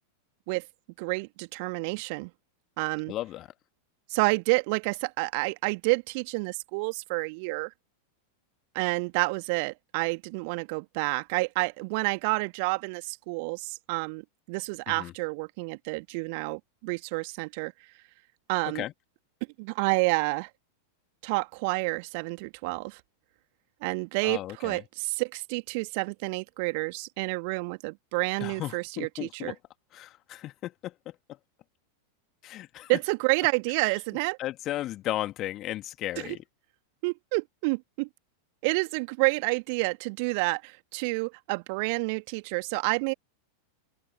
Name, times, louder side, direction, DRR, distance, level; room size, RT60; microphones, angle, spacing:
voice 1, 1.0-2.3 2.8-3.1 4.1-7.7 8.7-17.7 18.5-18.8 19.6-20.5 21.2-23.0 23.8-29.5 32.9-34.4 36.2-36.4 37.0-38.1 38.6-43.1, right 31 dB, 45° right, 2.1 m, -29 dB
voice 2, 3.1-3.5 14.9-15.1 18.7-18.9 24.2-24.8 28.4-29.6 29.9-30.9 32.4-32.9 34.4-36.4, left 14 dB, 35° left, 2.2 m, -35 dB
open air
figure-of-eight pair, 90°, 0 cm